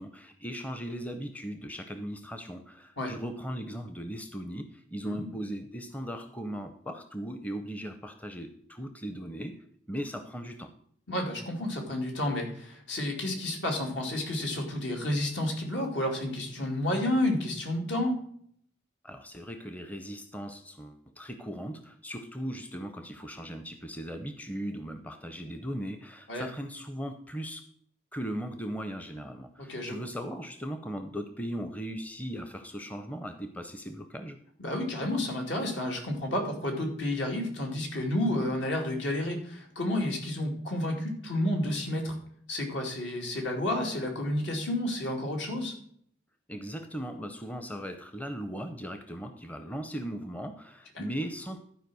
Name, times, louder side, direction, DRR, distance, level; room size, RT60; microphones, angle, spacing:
voice 1, 0.0-9.6 9.9-10.7 19.0-27.6 28.1-34.4 46.5-51.6, equal, 10° left, 7 dB, 0.6 m, -38 dB
voice 2, 11.1-18.2 26.3-26.5 29.6-30.1 34.6-42.2 42.5-45.7 51.0-51.1, left 1 dB, 75° left, 1 dB, 2.6 m, -31 dB
12.0 x 4.9 x 6.2 m, 0.64 s
head